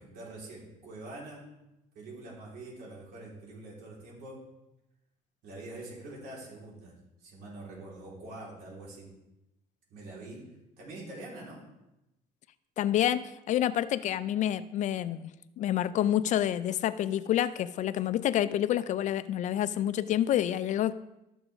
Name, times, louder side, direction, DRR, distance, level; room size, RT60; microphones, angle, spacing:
voice 1, 0.0-1.4 1.9-4.4 5.4-9.1 9.9-10.5 10.8-11.6, right 2 dB, 80° right, -4 dB, 4.1 m, -45 dB
voice 2, 12.8-20.9, left 11 dB, 50° left, 15 dB, 0.4 m, -28 dB
13.0 x 7.1 x 3.6 m, 0.93 s
cardioid pair, 130°, 16 cm